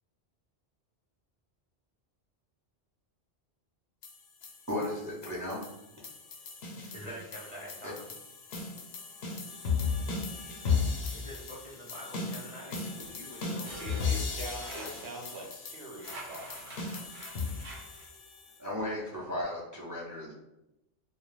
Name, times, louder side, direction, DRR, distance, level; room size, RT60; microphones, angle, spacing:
sound 1, 4.0-18.6, left 5 dB, 80° left, 0.8 m, -36 dB
voice 1, 4.7-5.7 18.6-20.3, left 1 dB, 30° right, -5 dB, 0.3 m, -35 dB
voice 2, 6.9-8.0 11.1-14.4 14.8-15.0, equal, 45° left, -6 dB, 0.4 m, -46 dB
sound 2, 13.0-15.5 16.0-18.1, right 1 dB, 55° right, 0.7 m, -46 dB
voice 3, 13.8-16.7, right 1 dB, 80° right, 1 dB, 0.8 m, -44 dB
2.3 x 2.2 x 3.0 m, 0.90 s
omnidirectional pair, 1.1 m